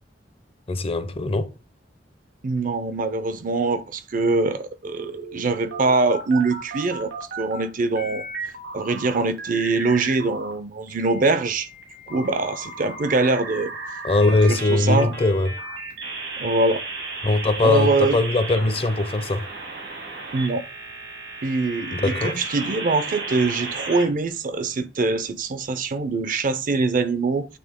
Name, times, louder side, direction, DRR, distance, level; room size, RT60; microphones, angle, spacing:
voice 1, 0.7-1.5 14.0-15.5 17.2-19.5 21.9-22.4, left 2 dB, 35° left, 0.6 m, -21 dB
voice 2, 2.4-8.3 8.7-11.7 12.1-13.7 14.5-15.1 16.4-16.8 17.6-18.2 20.3-20.6 21.4-27.5, right 3 dB, 50° right, 0.5 m, -23 dB
sound 1, 5.0-7.6 7.9-10.5 10.9-24.0, right 3 dB, 85° right, 2.2 m, -34 dB
8.6 x 3.2 x 3.6 m
head